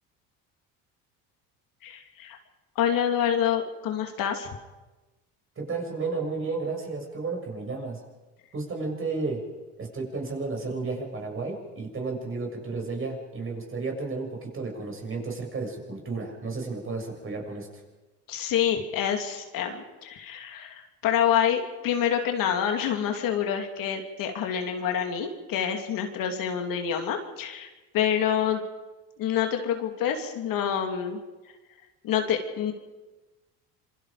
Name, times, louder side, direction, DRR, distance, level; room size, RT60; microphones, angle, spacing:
voice 1, 1.8-2.4 2.8-4.5 18.3-27.7 27.9-28.6 29.2-31.2 32.0-32.7, left 9 dB, 65° left, 4 dB, 2.8 m, -27 dB
voice 2, 5.6-8.0 8.5-9.4 9.8-17.7, right 3 dB, 35° right, 1 dB, 6.9 m, -32 dB
27.0 x 23.5 x 5.1 m, 1.2 s
supercardioid pair, 95°, 37 cm